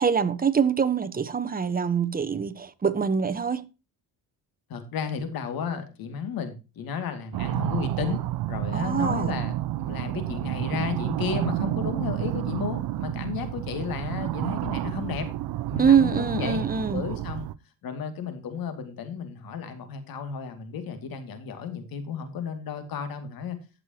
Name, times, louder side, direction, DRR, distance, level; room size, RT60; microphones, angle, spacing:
voice 1, 0.0-3.6 8.7-9.3 15.8-17.0, right 6 dB, 25° right, 1.0 m, -24 dB
voice 2, 4.7-15.3 15.7-16.6 16.9-17.5 17.8-23.6, left 7 dB, 65° left, 2.5 m, -33 dB
sound 1, 7.3-17.5, right 15 dB, 70° right, 0.7 m, -30 dB
15.5 x 6.8 x 2.9 m
cardioid pair, 120°, 37 cm